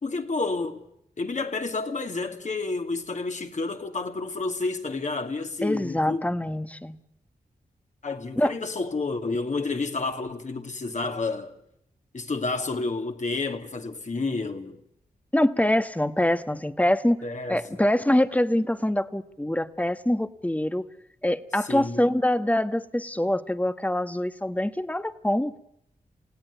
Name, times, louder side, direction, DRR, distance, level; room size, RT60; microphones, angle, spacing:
voice 1, 0.0-0.8 1.2-6.2 8.0-11.6 12.1-14.8 17.2-17.6 21.6-22.1, left 3 dB, 50° left, 2.5 m, -30 dB
voice 2, 5.6-7.0 8.4-8.5 15.3-17.2 17.5-20.9 21.2-25.6, left 1 dB, 10° left, 1.3 m, -24 dB
28.5 x 17.0 x 8.1 m
cardioid pair, 60°, 15 cm